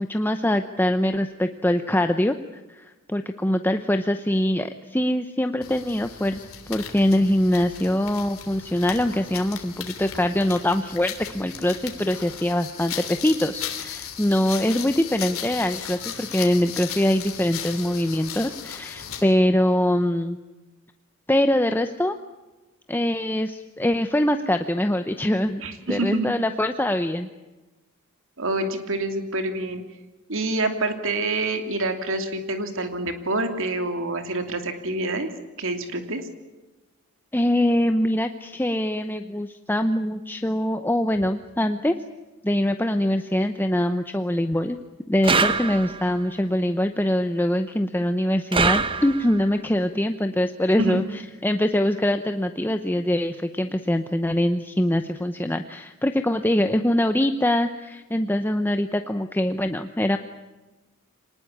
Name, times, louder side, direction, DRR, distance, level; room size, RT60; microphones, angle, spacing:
voice 1, 0.0-20.4 21.3-22.1 22.9-25.6 25.9-27.3 37.3-41.9 42.4-44.8 45.1-60.2, left 1 dB, 10° left, 8 dB, 0.8 m, -23 dB
sound 1, 5.6-19.3, left 9 dB, 65° left, 3.4 m, -36 dB
voice 2, 25.6-26.3 28.4-29.8 30.3-35.3 35.6-36.2 50.8-51.0, right 2 dB, 60° right, 6 dB, 2.9 m, -27 dB
sound 2, 45.2-46.2 48.5-49.5, right 4 dB, 25° right, 1.0 m, -23 dB
25.5 x 19.5 x 8.7 m, 1.1 s
head